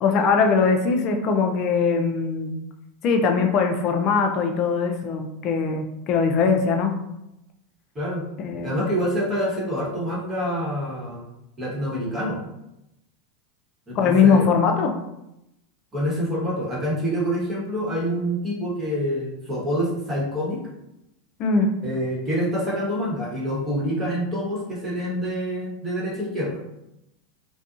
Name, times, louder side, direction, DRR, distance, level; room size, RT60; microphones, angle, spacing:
voice 1, 0.0-2.6 3.0-6.9 8.4-8.9 13.9-15.0 21.4-21.7, left 5 dB, 45° left, 4 dB, 0.4 m, -21 dB
voice 2, 8.6-11.2 11.6-12.4 13.9-14.5 15.9-20.6 21.8-26.6, equal, 20° right, -5 dB, 1.1 m, -26 dB
2.6 x 2.2 x 2.5 m, 0.86 s
hypercardioid pair, 110°, 0 cm